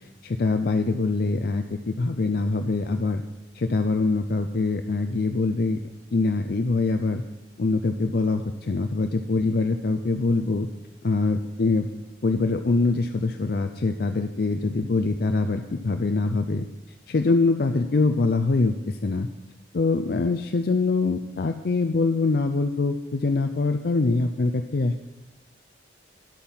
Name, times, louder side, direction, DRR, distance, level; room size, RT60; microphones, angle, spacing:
voice 1, 0.2-3.2 3.6-5.8 6.1-7.2 7.6-10.7 11.0-11.9 12.2-16.7 17.1-19.3 19.7-25.0, left 3 dB, 55° left, 7 dB, 0.5 m, -24 dB
11.0 x 8.6 x 5.6 m, 0.99 s
head